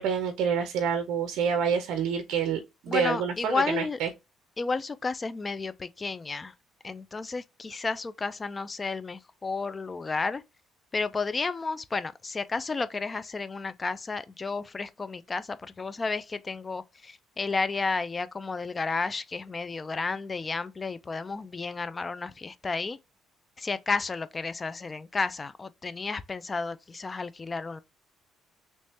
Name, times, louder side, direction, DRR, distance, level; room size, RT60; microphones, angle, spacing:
voice 1, 0.0-4.1, right 7 dB, 80° right, 0.4 m, -28 dB
voice 2, 2.9-4.0 4.6-6.5 6.8-10.4 10.9-23.0 23.6-27.8, left 4 dB, 25° left, 0.3 m, -32 dB
3.1 x 2.7 x 3.4 m
cardioid pair, 100°, 0 cm